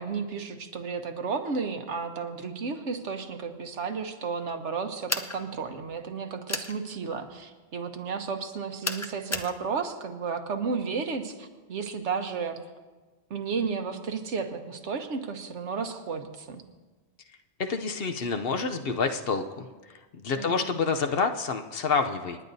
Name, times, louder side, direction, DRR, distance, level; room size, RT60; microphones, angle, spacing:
voice 1, 0.0-12.6 13.3-16.6 20.4-20.7, right 5 dB, 80° right, 6 dB, 1.3 m, -33 dB
sound 1, 5.1-5.4 6.5-6.7 8.8-9.5, left 2 dB, 30° left, 0.3 m, -31 dB
voice 2, 17.6-19.7 20.2-22.4, left 5 dB, 60° left, 6 dB, 0.9 m, -28 dB
28.0 x 10.0 x 2.7 m, 1.3 s
omnidirectional pair, 1.2 m